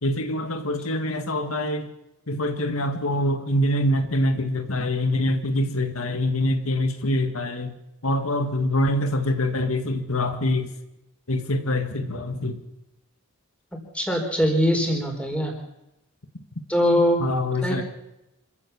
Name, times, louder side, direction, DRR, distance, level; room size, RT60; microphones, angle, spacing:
voice 1, 0.0-1.9 2.3-7.7 8.0-10.7 11.3-12.6 17.2-17.8, left 1 dB, 80° left, 7 dB, 1.9 m, -25 dB
voice 2, 13.9-15.5 16.7-17.3 17.6-17.8, equal, 5° left, 2 dB, 4.3 m, -22 dB
26.5 x 15.0 x 7.1 m, 0.91 s
head